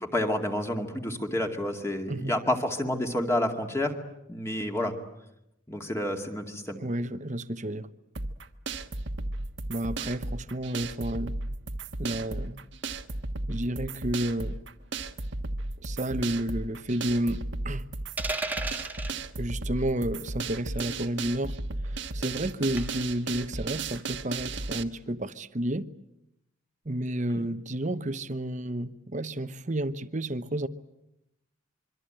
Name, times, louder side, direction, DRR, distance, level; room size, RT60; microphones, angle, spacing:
voice 1, 0.0-4.0 4.3-4.9 5.7-6.8 27.3-27.4, left 1 dB, 15° left, 2.3 m, -29 dB
voice 2, 6.8-7.9 9.7-11.4 12.0-12.6 13.5-14.6 15.8-17.8 19.4-21.6 21.8-25.9 26.8-30.7, right 1 dB, 35° right, 1.0 m, -31 dB
sound 1, 8.1-24.8, right 2 dB, 60° right, 1.4 m, -35 dB
sound 2, 18.2-19.1 20.8-21.0 22.8-23.1, right 3 dB, 10° right, 1.6 m, -33 dB
26.0 x 24.0 x 9.0 m
head